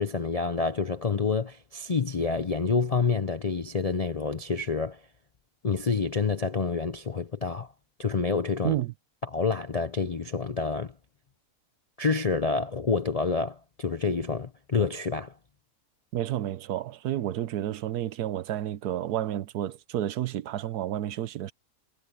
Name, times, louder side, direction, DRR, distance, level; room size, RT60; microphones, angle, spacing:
voice 1, 0.0-5.0 5.6-7.7 8.0-8.8 9.2-10.9 12.0-15.3, left 4 dB, 45° left, 0.4 m, -28 dB
voice 2, 16.1-21.5, right 12 dB, 80° right, 1.3 m, -30 dB
omnidirectional pair, 1.7 m